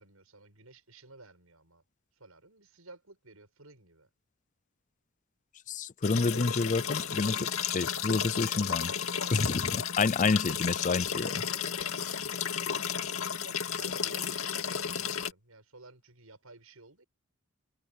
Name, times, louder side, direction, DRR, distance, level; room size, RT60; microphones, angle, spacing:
voice 1, 0.0-1.8 2.1-4.1 12.9-17.0, right 3 dB, 90° right, 7.3 m, -54 dB
voice 2, 5.7-8.9 9.3-11.4, left 4 dB, 35° left, 0.5 m, -29 dB
sound 1, 6.0-15.3, left 8 dB, 85° left, 2.1 m, -33 dB
head